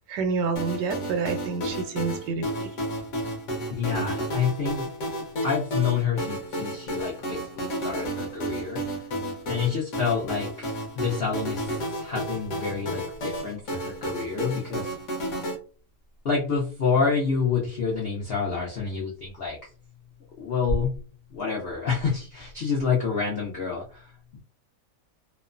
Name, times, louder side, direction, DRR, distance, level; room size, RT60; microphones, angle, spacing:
voice 1, 0.1-2.7 3.9-4.1, right 4 dB, 85° right, 7 dB, 1.3 m, -28 dB
sound 1, 0.6-15.6, right 1 dB, 55° left, 0.9 m, -32 dB
voice 2, 3.7-4.9 5.4-8.8 9.5-14.9 16.2-19.6 20.4-20.9 21.3-24.4, left 5 dB, 90° left, -3 dB, 0.5 m, -28 dB
3.0 x 2.1 x 2.4 m, 0.38 s
omnidirectional pair, 1.9 m